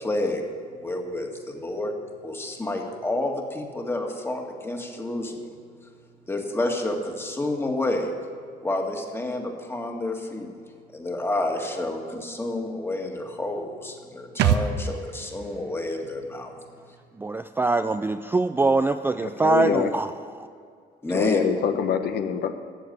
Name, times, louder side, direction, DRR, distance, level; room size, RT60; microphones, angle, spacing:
voice 1, 0.0-1.9 2.2-5.4 6.3-8.1 8.6-10.5 10.9-16.5 21.0-21.4, left 2 dB, 15° left, 2 dB, 1.8 m, -29 dB
sound 1, 14.4-17.9 18.2-18.3, right 8 dB, 85° right, 0.8 m, -29 dB
voice 2, 17.2-20.1 20.4-20.5, right 3 dB, 10° right, 9 dB, 0.3 m, -23 dB
voice 3, 19.2-19.9 21.1-22.5, left 7 dB, 70° left, 7 dB, 1.0 m, -25 dB
14.0 x 7.0 x 9.4 m, 2.2 s
cardioid pair, 120°, 17 cm